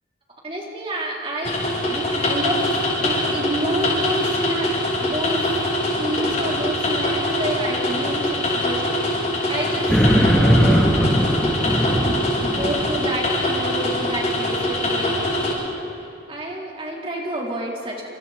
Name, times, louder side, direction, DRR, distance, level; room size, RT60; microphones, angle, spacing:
voice 1, 0.4-5.6 6.0-10.9 12.0-15.6 16.3-18.1, right 1 dB, 30° right, -2 dB, 3.7 m, -29 dB
sound 1, 1.4-15.5, left 1 dB, 40° left, 6.9 m, -23 dB
sound 2, 9.9-13.0, equal, 5° left, 2.8 m, -19 dB
28.5 x 28.0 x 4.3 m, 2.8 s
head